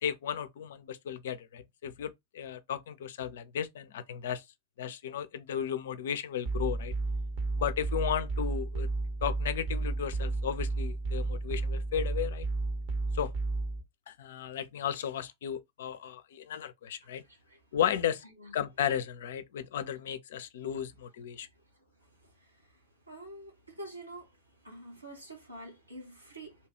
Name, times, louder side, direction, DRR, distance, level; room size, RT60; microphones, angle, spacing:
voice 1, 0.0-4.4 4.8-6.9 7.6-8.9 9.2-12.5 13.1-13.3 14.1-17.2 17.7-18.2 18.5-21.5, left 9 dB, 60° left, 0.4 m, -34 dB
sound 1, 6.5-13.8, right 3 dB, 45° right, 0.9 m, -32 dB
voice 2, 23.1-24.3 24.6-26.6, right 1 dB, 85° right, 1.2 m, -46 dB
2.8 x 2.3 x 2.8 m
figure-of-eight pair, 90°, 0 cm